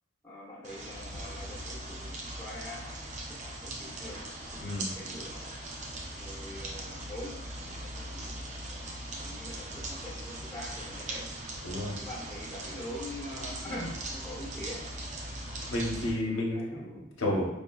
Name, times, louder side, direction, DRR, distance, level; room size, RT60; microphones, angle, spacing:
voice 1, 0.2-5.5 6.2-8.8 9.2-11.3 12.0-14.8 16.2-17.0, left 1 dB, 10° left, -7 dB, 0.8 m, -44 dB
sound 1, 0.6-16.1, right 1 dB, 35° right, 0.4 m, -40 dB
voice 2, 4.6-4.9 11.6-11.9 15.7-17.5, left 1 dB, 85° left, -2 dB, 0.9 m, -31 dB
4.9 x 2.6 x 2.2 m, 0.97 s
head